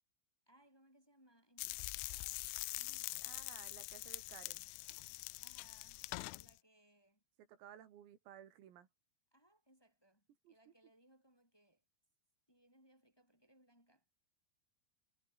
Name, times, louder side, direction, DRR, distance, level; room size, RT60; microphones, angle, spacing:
voice 1, 0.5-3.4 5.4-7.2 9.3-11.8 12.5-14.0, right 1 dB, 5° left, 7.1 m, -70 dB
sound 1, 1.6-6.5, left 24 dB, 85° left, 2.7 m, -44 dB
voice 2, 3.2-4.7 7.5-8.9 10.5-10.6, right 10 dB, 80° right, 5.5 m, -57 dB
omnidirectional pair, 6.0 m